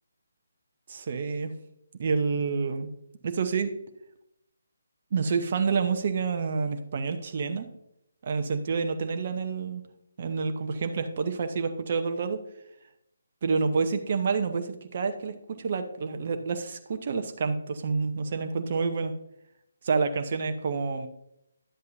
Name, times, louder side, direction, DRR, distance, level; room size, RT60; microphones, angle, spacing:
voice 1, 0.9-1.5 2.0-2.9 3.2-3.7 5.1-7.7 8.2-9.8 10.2-12.4 13.4-19.1 19.8-21.1, right 5 dB, 45° right, 6 dB, 0.8 m, -28 dB
11.0 x 7.9 x 2.6 m, 0.79 s
figure-of-eight pair, 145°, 0 cm